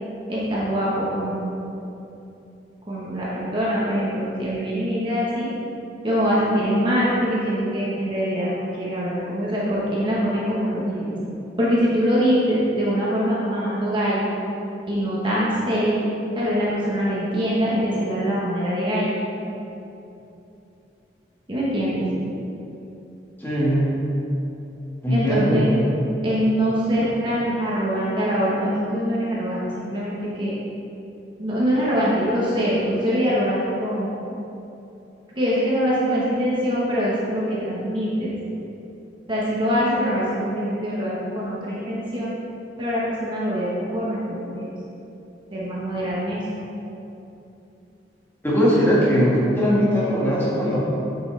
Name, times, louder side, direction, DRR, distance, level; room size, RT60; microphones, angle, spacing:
voice 1, 0.3-1.4 2.9-5.5 6.0-11.3 11.6-14.3 14.9-16.0 16.4-19.1 21.5-22.1 25.1-25.7 26.2-30.5 31.4-34.1 35.4-38.3 39.3-42.3 42.8-44.7 45.5-46.4, equal, 25° right, -7 dB, 1.2 m, -23 dB
voice 2, 23.4-23.9 25.0-25.6 48.4-50.8, equal, 10° left, -8 dB, 1.7 m, -20 dB
8.7 x 6.1 x 3.3 m, 2.9 s
head